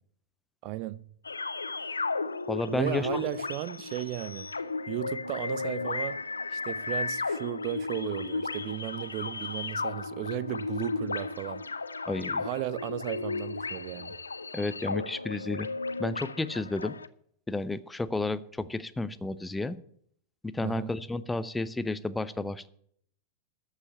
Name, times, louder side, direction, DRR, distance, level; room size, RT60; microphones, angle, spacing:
voice 1, 0.6-1.1 2.7-4.5 4.9-6.2 6.5-11.6 12.4-14.1 20.6-20.9, right 16 dB, 45° right, 0.4 m, -35 dB
sound 1, 1.3-17.1, left 3 dB, 80° left, 0.5 m, -34 dB
voice 2, 2.5-3.3 12.1-12.4 14.5-15.7 16.0-16.9 17.5-19.8 20.4-22.7, left 2 dB, 10° left, 0.6 m, -32 dB
13.5 x 5.8 x 8.3 m
figure-of-eight pair, 90°, 0 cm